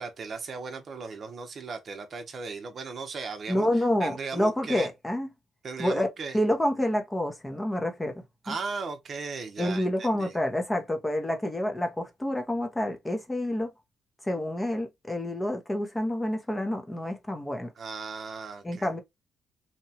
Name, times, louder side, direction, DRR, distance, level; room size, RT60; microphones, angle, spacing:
voice 1, 0.0-4.9 5.6-6.4 8.4-10.3 17.8-19.0, right 4 dB, 45° right, 0.7 m, -37 dB
voice 2, 3.5-5.3 5.8-6.1 6.3-8.5 9.6-13.7 14.2-17.7 18.6-19.0, left 1 dB, 15° left, 0.6 m, -28 dB
2.8 x 2.2 x 2.7 m
cardioid pair, 100°, 0 cm